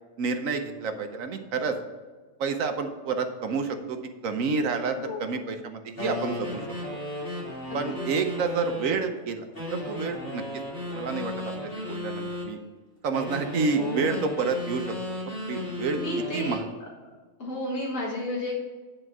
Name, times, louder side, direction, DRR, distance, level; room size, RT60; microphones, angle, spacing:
voice 1, 0.2-1.8 2.4-6.6 6.9-7.0 7.7-10.4 10.9-12.6 13.0-14.9 15.5-16.0 16.3-16.6, right 4 dB, 80° right, 6 dB, 1.2 m, -29 dB
voice 2, 4.8-5.3 7.7-7.8 13.7-14.2 16.0-16.6 17.4-18.5, left 1 dB, 65° left, -4 dB, 2.0 m, -32 dB
sound 1, 6.0-9.0 9.5-12.5 13.1-16.6, left 1 dB, 45° left, 3.1 m, -35 dB
10.0 x 4.5 x 6.1 m, 1.3 s
omnidirectional pair, 1.4 m